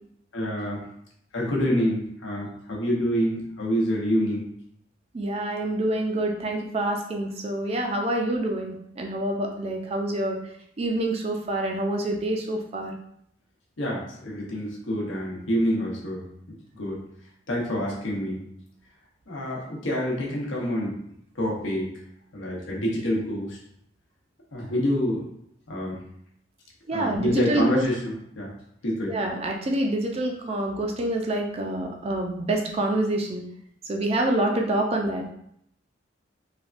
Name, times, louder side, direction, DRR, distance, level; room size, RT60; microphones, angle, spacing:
voice 1, 0.3-0.8 1.3-4.4 13.8-16.2 16.7-17.0 17.5-18.4 19.3-21.0 21.4-21.9 22.3-23.6 24.5-25.2 25.7-26.0 26.9-28.5 28.8-29.2, equal, 90° left, -2 dB, 0.8 m, -27 dB
voice 2, 5.1-10.4 10.8-12.9 26.9-27.8 29.1-33.4 33.9-35.2, right 1 dB, 30° right, 2 dB, 0.4 m, -27 dB
3.3 x 2.2 x 2.4 m, 0.72 s
head